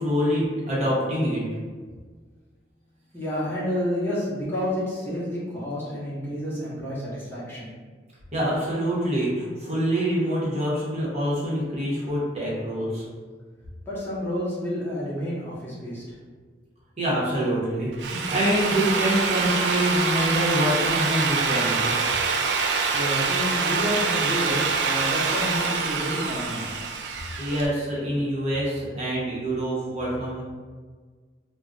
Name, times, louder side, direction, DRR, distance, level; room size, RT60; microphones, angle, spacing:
voice 1, 0.0-1.4 8.3-13.0 17.0-21.9 27.4-30.4, equal, 40° right, -6 dB, 0.9 m, -25 dB
voice 2, 3.1-7.7 13.9-16.0 22.9-26.8, equal, 15° left, -9 dB, 0.8 m, -29 dB
Drill, 17.8-27.7, right 4 dB, 75° right, 0.3 m, -25 dB
2.4 x 2.1 x 3.8 m, 1.5 s
head